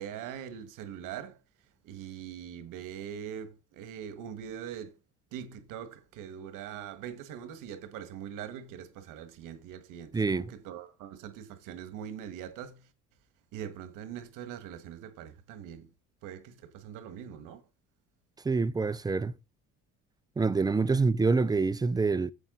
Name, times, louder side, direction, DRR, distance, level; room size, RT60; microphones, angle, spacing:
voice 1, 0.0-1.4 1.8-5.0 5.3-12.9 13.5-15.9 16.2-17.6, right 9 dB, 90° right, 1.5 m, -42 dB
voice 2, 10.1-10.5 18.4-19.3 20.4-22.3, right 4 dB, 15° right, 0.4 m, -26 dB
9.2 x 7.3 x 3.8 m
cardioid pair, 120°, 31 cm